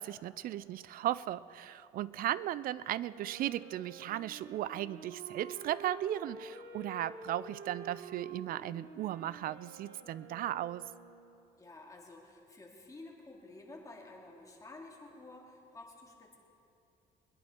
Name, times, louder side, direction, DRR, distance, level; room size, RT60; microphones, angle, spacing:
voice 1, 0.0-10.9, right 13 dB, 60° right, 18 dB, 0.4 m, -36 dB
Wind instrument woodwind instrument, 3.0-11.4, right 4 dB, 75° right, 1.4 m, -49 dB
voice 2, 11.6-16.4, left 2 dB, 20° left, -1 dB, 2.4 m, -51 dB
22.5 x 10.5 x 4.5 m, 2.8 s
cardioid pair, 110°, 17 cm